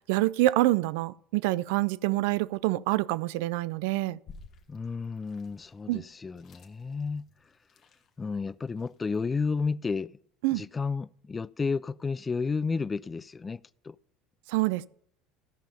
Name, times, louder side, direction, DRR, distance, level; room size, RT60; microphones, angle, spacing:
voice 1, 0.1-4.2 5.9-6.0 10.4-10.6 14.5-14.9, right 18 dB, 75° right, 0.3 m, -26 dB
sound 1, 4.3-9.4, left 4 dB, 50° left, 1.5 m, -54 dB
voice 2, 4.7-7.3 8.2-10.1 10.5-14.0, left 4 dB, 25° left, 0.3 m, -32 dB
14.5 x 5.6 x 5.4 m
hypercardioid pair, 85°, 0 cm